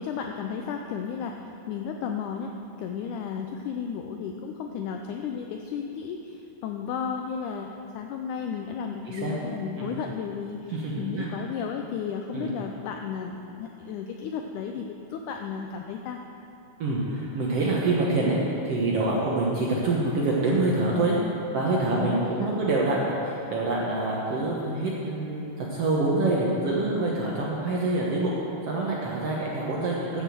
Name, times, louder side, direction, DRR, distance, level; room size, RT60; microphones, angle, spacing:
voice 1, 0.0-2.5 2.8-16.2 22.0-22.5, left 6 dB, 85° left, 3 dB, 1.8 m, -33 dB
voice 2, 10.7-11.3 12.3-12.5 16.8-21.2 21.5-28.3 28.6-30.2, right 2 dB, 65° right, -4 dB, 1.6 m, -26 dB
12.0 x 5.9 x 7.6 m, 2.8 s
omnidirectional pair, 4.1 m